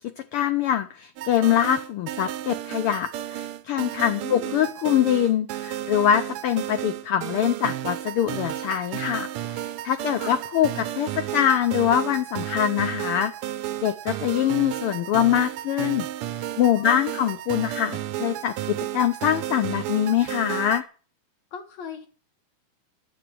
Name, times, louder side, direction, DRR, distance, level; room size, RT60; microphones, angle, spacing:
voice 1, 0.3-16.1 16.4-20.8, left 10 dB, 80° left, 10 dB, 1.2 m, -24 dB
sound 1, 1.2-20.8, right 13 dB, 75° right, 1.3 m, -33 dB
voice 2, 4.2-4.5 10.2-10.4 16.8-17.2 21.5-22.1, left 6 dB, 65° left, 6 dB, 2.9 m, -39 dB
10.5 x 7.3 x 9.3 m, 0.39 s
omnidirectional pair, 3.3 m